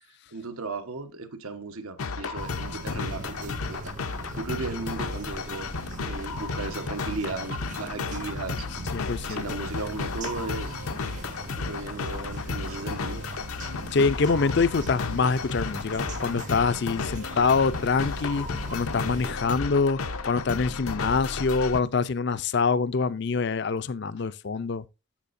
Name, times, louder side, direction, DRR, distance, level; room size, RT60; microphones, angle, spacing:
voice 1, 0.3-3.9 4.4-5.7 6.0-8.7 9.2-10.7 11.5-13.2, right 3 dB, 85° right, 1.1 m, -36 dB
sound 1, 2.0-21.8, left 4 dB, 80° left, 0.8 m, -33 dB
sound 2, 2.3-19.4, right 3 dB, 35° right, 0.4 m, -41 dB
voice 2, 8.9-9.4 13.9-20.0 20.2-24.8, left 4 dB, 50° left, 0.5 m, -25 dB
13.5 x 5.1 x 2.6 m
head